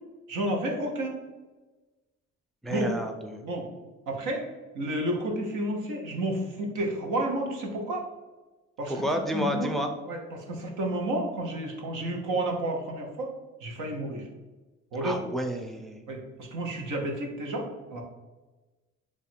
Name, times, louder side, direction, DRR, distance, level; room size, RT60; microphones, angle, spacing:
voice 1, 0.3-1.2 2.7-2.9 3.4-3.7 4.1-4.5 4.7-8.1 8.8-9.0 9.3-9.7 10.1-13.3 13.6-14.3 14.9-15.2 16.1-18.0, right 1 dB, 90° right, 1 dB, 0.8 m, -31 dB
voice 2, 2.6-3.4 8.9-9.9 15.0-16.0, equal, ahead, 4 dB, 0.4 m, -30 dB
3.1 x 2.4 x 4.3 m, 1.2 s
cardioid pair, 90°, 30 cm